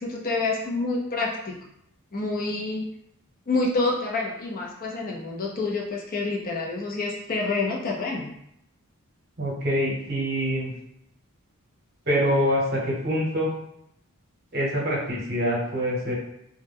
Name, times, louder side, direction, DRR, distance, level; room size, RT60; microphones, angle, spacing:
voice 1, 0.0-1.6 2.1-2.8 3.5-8.3, left 3 dB, 40° left, -1 dB, 0.5 m, -27 dB
voice 2, 9.4-10.7 12.1-13.5 14.5-16.1, equal, 45° right, -4 dB, 0.8 m, -25 dB
2.1 x 2.1 x 3.3 m, 0.76 s
head